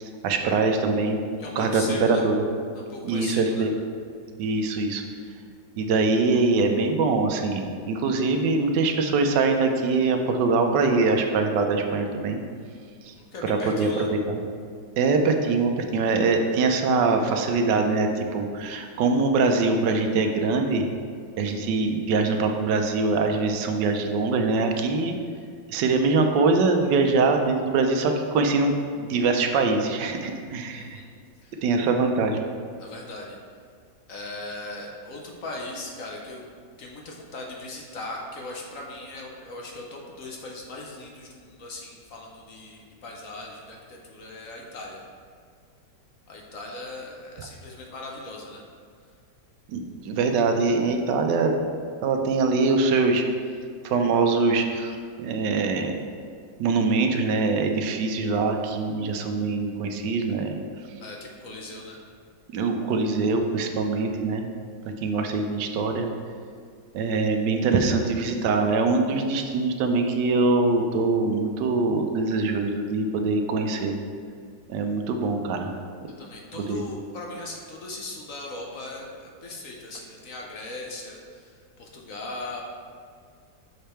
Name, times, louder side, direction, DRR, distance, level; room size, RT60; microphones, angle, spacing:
voice 1, 0.0-1.2 1.6-2.4 3.0-3.7 4.4-5.0 5.8-12.4 13.1-13.2 13.4-14.4 15.0-20.9 21.4-25.1 25.7-31.0 31.6-32.4 49.7-51.5 52.0-53.2 53.8-55.9 56.6-60.6 62.5-64.5 65.0-66.1 66.9-73.9 74.7-75.7 76.6-76.8, right 3 dB, 80° right, 4 dB, 1.3 m, -23 dB
voice 2, 1.4-2.3 2.7-3.7 13.1-14.1 30.7-31.1 31.4-31.6 32.8-33.4 34.1-36.4 36.8-45.0 46.3-48.6 61.0-62.0 76.2-82.6, left 2 dB, 55° left, -1 dB, 1.1 m, -39 dB
6.5 x 5.1 x 4.4 m, 2.1 s
omnidirectional pair, 1.9 m